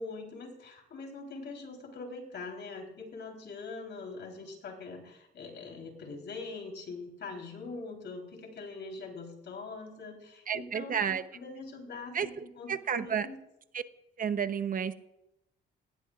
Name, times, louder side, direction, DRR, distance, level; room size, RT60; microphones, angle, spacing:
voice 1, 0.0-12.3 12.6-13.4, left 3 dB, 60° left, 2 dB, 3.8 m, -43 dB
voice 2, 10.5-11.2 12.1-13.3 13.7-13.8 14.2-14.9, right 7 dB, 45° right, 11 dB, 0.9 m, -31 dB
18.5 x 16.5 x 2.5 m, 0.87 s
cardioid pair, 90°, 20 cm